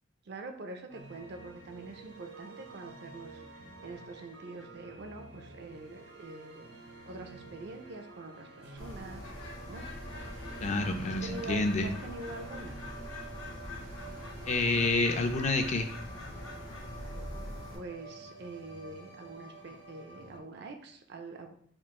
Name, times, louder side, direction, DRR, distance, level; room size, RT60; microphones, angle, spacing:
voice 1, 0.3-6.8 7.1-9.3 9.7-9.9 11.0-12.8 17.7-21.5, right 2 dB, 55° right, 6 dB, 0.4 m, -45 dB
sound 1, 0.9-20.4, right 3 dB, 80° right, 0.9 m, -49 dB
Bird, 8.8-17.8, left 1 dB, 80° left, 0.8 m, -43 dB
voice 2, 10.6-11.9 14.5-15.9, left 2 dB, 35° left, 6 dB, 0.4 m, -28 dB
3.7 x 2.4 x 3.7 m, 0.65 s
head